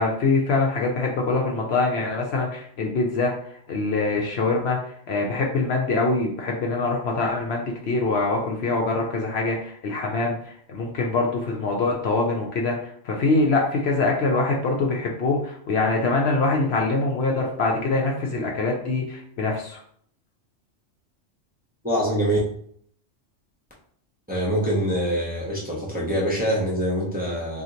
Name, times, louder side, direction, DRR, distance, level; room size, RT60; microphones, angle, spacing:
voice 1, 0.0-4.8 5.1-10.4 10.7-19.8, left 3 dB, 65° left, 0 dB, 0.8 m, -24 dB
voice 2, 21.8-22.4 24.3-27.6, equal, 10° right, -6 dB, 0.7 m, -24 dB
2.9 x 2.4 x 3.7 m, 0.62 s
omnidirectional pair, 1.3 m